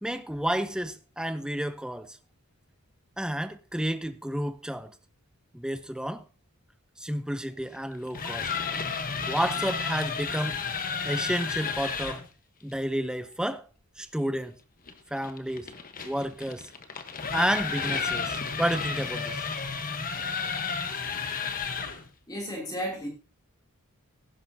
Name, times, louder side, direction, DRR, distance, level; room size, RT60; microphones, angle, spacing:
voice 1, 0.0-2.2 3.2-4.9 5.5-6.2 7.0-8.5 9.3-10.6 11.0-12.2 12.6-13.6 14.0-14.5 15.1-15.7 16.0-16.7 17.3-19.4, equal, 5° right, 0.7 m, -30 dB
sound 1, 7.9-12.3 14.9-22.1, left 5 dB, 40° left, 1.2 m, -32 dB
voice 2, 22.3-23.1, equal, 20° left, 3.0 m, -33 dB
17.0 x 10.5 x 2.8 m
head